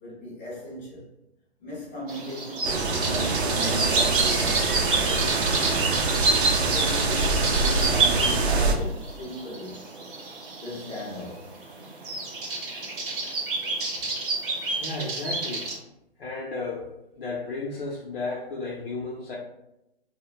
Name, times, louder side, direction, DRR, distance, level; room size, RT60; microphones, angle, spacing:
voice 1, 0.0-1.1 1.6-5.6 6.5-9.8 10.6-11.5, left 1 dB, 15° left, -6 dB, 0.4 m, -37 dB
sound 1, 2.1-15.8, right 3 dB, 55° right, 0.8 m, -30 dB
sound 2, 2.6-8.8, right 3 dB, 80° right, 0.5 m, -24 dB
voice 2, 14.4-15.7 16.2-16.9 17.2-19.4, left 3 dB, 60° left, -3 dB, 0.5 m, -33 dB
2.1 x 2.0 x 3.0 m, 0.87 s
figure-of-eight pair, 135°, 32 cm